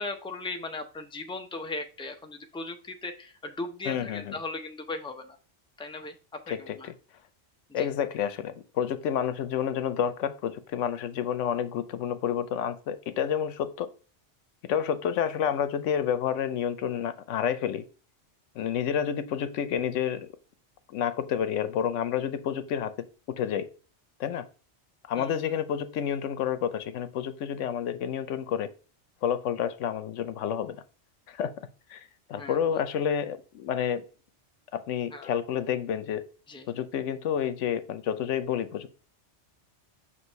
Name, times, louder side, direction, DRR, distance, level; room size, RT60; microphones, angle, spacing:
voice 1, 0.0-5.4 5.8-6.9 7.7-7.9 25.2-25.4 32.3-32.6 35.1-35.3 36.5-36.7, left 3 dB, 5° left, 5 dB, 0.4 m, -38 dB
voice 2, 3.9-4.3 6.5-6.9 7.7-13.9 14.7-17.8 18.6-20.3 20.9-22.9 23.3-23.7 24.2-24.4 25.1-28.7 29.2-30.8 31.3-31.5 31.9-34.0 34.7-36.2 36.7-38.9, left 8 dB, 85° left, 12 dB, 1.0 m, -29 dB
6.2 x 3.1 x 5.3 m, 0.38 s
omnidirectional pair, 1.2 m